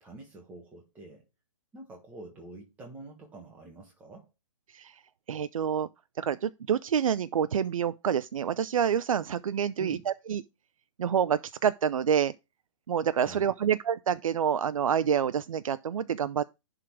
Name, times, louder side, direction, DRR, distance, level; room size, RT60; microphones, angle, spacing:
voice 1, 0.0-1.2 1.7-4.3 9.8-10.1 13.2-13.5, right 2 dB, 10° right, 1.3 m, -47 dB
voice 2, 5.3-5.9 6.2-10.4 11.0-12.3 12.9-16.4, right 8 dB, 90° right, 0.5 m, -27 dB
11.0 x 3.8 x 4.6 m
hypercardioid pair, 160°, 17 cm